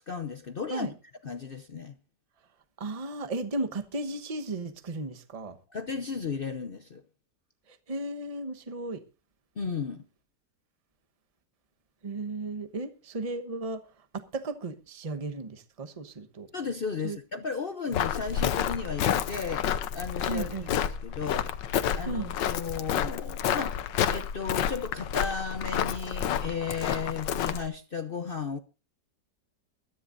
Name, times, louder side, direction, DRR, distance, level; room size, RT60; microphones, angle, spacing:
voice 1, 0.1-0.9 1.2-1.9 5.7-7.0 9.6-10.0 16.5-21.5 21.9-23.8 24.1-28.6, left 5 dB, 55° left, 0.6 m, -34 dB
voice 2, 2.8-5.6 7.9-9.0 12.0-13.8 14.1-16.5 17.0-17.2 20.3-20.7 22.0-22.3, right 2 dB, 25° right, 1.0 m, -35 dB
Walk footsteps, 17.9-27.7, left 9 dB, 90° left, 1.5 m, -30 dB
21.5 x 13.5 x 2.6 m
omnidirectional pair, 1.9 m